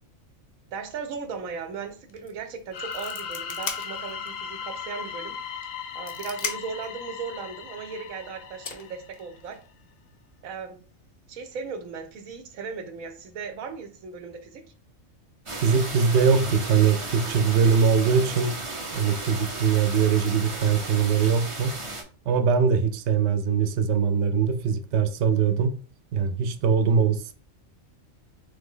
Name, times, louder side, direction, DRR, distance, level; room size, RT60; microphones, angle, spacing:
voice 1, 0.7-5.4 5.9-9.6 10.4-10.8 11.3-14.7, right 5 dB, 85° right, 1.1 m, -37 dB
sound 1, 2.1-2.3 2.6-4.4 4.8-4.9 5.6-6.9 8.0-8.1 8.6-9.7, left 5 dB, 45° left, 0.5 m, -36 dB
sound 2, 2.7-9.4, left 7 dB, 80° left, 1.0 m, -37 dB
sound 3, 15.5-22.0, right 2 dB, 30° right, 0.6 m, -35 dB
voice 2, 15.6-18.6 18.9-21.8 22.3-25.8 26.1-27.3, right 6 dB, 65° right, 0.7 m, -22 dB
3.5 x 3.4 x 3.6 m
omnidirectional pair, 1.4 m